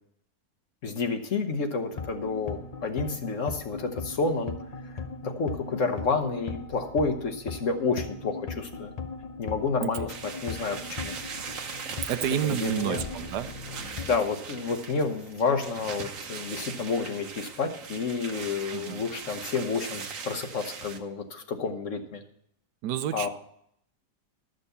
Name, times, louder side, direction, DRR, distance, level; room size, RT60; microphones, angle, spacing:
voice 1, 0.8-4.5 5.2-8.9 9.4-11.1 12.4-13.0 14.1-22.2 23.1-23.3, left 4 dB, 50° left, 6 dB, 1.3 m, -30 dB
sound 1, 1.9-14.2, left 4 dB, 75° left, 0.3 m, -39 dB
sound 2, 10.1-21.0, right 5 dB, 55° right, 1.3 m, -40 dB
voice 2, 12.1-13.5 18.7-19.0 22.8-23.3, right 11 dB, 80° right, 12 dB, 1.3 m, -29 dB
12.5 x 6.4 x 6.8 m, 0.70 s
omnidirectional pair, 1.8 m